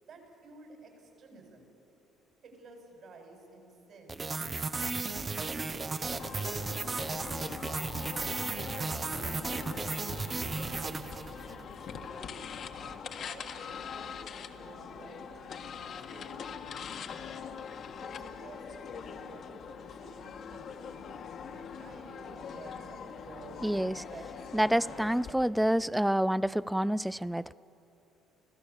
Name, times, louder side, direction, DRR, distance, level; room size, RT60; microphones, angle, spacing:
voice 1, 0.0-1.7 2.4-4.6 5.2-7.7 8.2-9.8 10.1-15.5 16.1-16.7 17.9-25.9, right 3 dB, 55° right, 1 dB, 6.6 m, -52 dB
sound 1, 4.1-11.6, right 3 dB, 30° right, 1.0 m, -35 dB
sound 2, 6.2-25.3, left 6 dB, 55° left, 1.5 m, -43 dB
voice 2, 23.6-23.9 24.5-27.5, equal, 5° right, 19 dB, 0.4 m, -28 dB
26.0 x 16.0 x 7.4 m, 2.8 s
hypercardioid pair, 55°, 0 cm